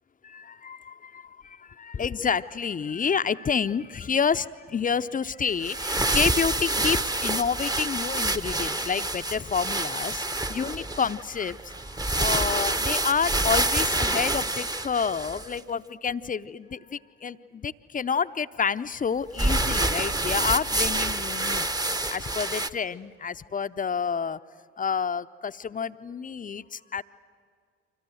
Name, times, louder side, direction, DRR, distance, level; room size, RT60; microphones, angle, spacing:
voice 1, 0.2-21.7 22.1-24.4 24.8-27.0, left 6 dB, 25° left, 13 dB, 0.7 m, -29 dB
sound 1, 5.5-15.6 19.4-22.7, right 2 dB, 10° right, 0.9 m, -27 dB
30.0 x 25.0 x 7.8 m, 2.2 s
hypercardioid pair, 55°, 36 cm